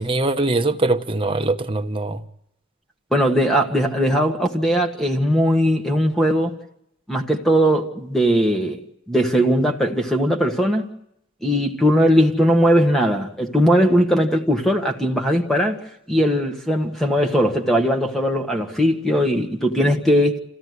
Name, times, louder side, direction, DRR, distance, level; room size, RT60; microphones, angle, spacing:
voice 1, 0.0-2.2, right 2 dB, 25° right, 1.0 m, -22 dB
voice 2, 3.1-6.5 7.1-8.8 9.1-10.9 11.4-15.8 16.1-20.4, equal, ahead, 1.6 m, -19 dB
28.0 x 15.5 x 9.6 m
head